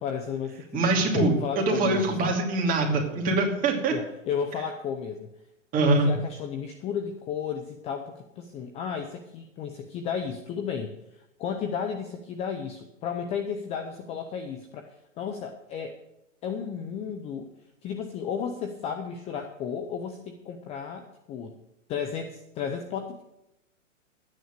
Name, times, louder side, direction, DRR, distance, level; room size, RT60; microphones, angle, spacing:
voice 1, 0.0-2.4 3.9-5.3 5.8-15.9 16.4-17.5 17.8-21.6 21.9-23.2, left 7 dB, 15° left, 6 dB, 0.6 m, -33 dB
voice 2, 0.7-3.9 5.7-6.1, right 2 dB, 20° right, 1 dB, 2.6 m, -24 dB
12.0 x 9.7 x 6.6 m, 0.89 s
hypercardioid pair, 140°, 39 cm